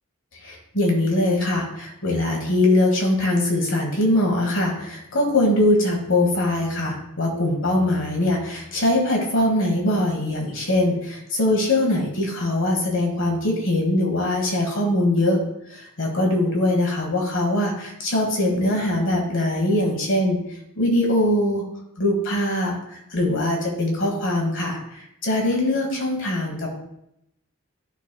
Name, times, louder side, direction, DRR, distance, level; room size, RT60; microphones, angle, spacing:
voice 1, 0.4-15.4 15.7-20.4 20.8-21.6 22.0-26.8, left 1 dB, 60° left, 0 dB, 1.2 m, -22 dB
11.0 x 4.0 x 2.2 m, 0.79 s
head